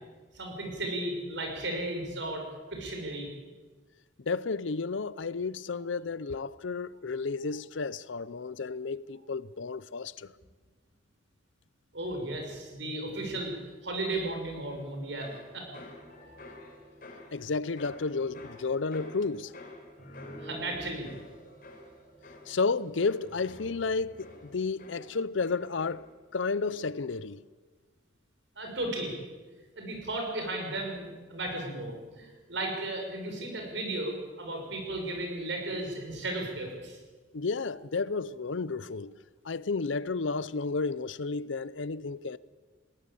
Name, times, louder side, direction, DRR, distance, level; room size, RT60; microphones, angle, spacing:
voice 1, 0.3-2.4 2.7-3.3 11.9-13.5 13.8-15.7 20.4-21.1 28.6-29.1 29.8-37.0, right 2 dB, 65° right, 6.1 m, -35 dB
voice 2, 4.2-10.3 17.3-19.5 22.5-26.1 26.3-27.4 37.3-39.2 39.4-42.4, left 4 dB, 75° left, 0.6 m, -32 dB
sound 1, 14.7-26.3 26.6-27.1, left 1 dB, 45° left, 4.3 m, -49 dB
20.5 x 17.5 x 8.5 m
head